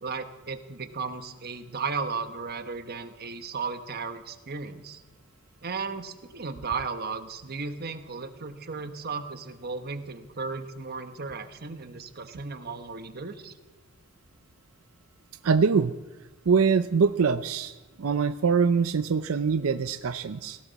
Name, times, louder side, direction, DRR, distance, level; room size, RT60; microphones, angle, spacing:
voice 1, 0.0-5.0 5.6-13.5, right 4 dB, 50° right, 8 dB, 1.2 m, -35 dB
voice 2, 15.4-15.9 16.5-20.6, right 5 dB, 90° right, 12 dB, 0.5 m, -24 dB
18.5 x 16.0 x 4.1 m, 1.2 s
head